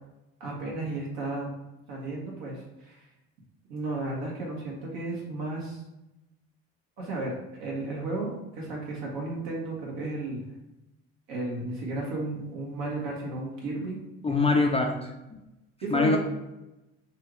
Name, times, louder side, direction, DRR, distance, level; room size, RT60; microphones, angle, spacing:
voice 1, 0.4-1.5 1.9-3.1 3.7-5.8 7.0-10.4 11.3-14.0 14.3-14.5 15.8-16.2, right 2 dB, 70° right, -3 dB, 1.3 m, -33 dB
voice 2, 14.2-15.1 15.9-16.2, left 3 dB, 15° left, 2 dB, 0.4 m, -23 dB
3.2 x 2.6 x 3.0 m, 0.95 s
supercardioid pair, 70°, 36 cm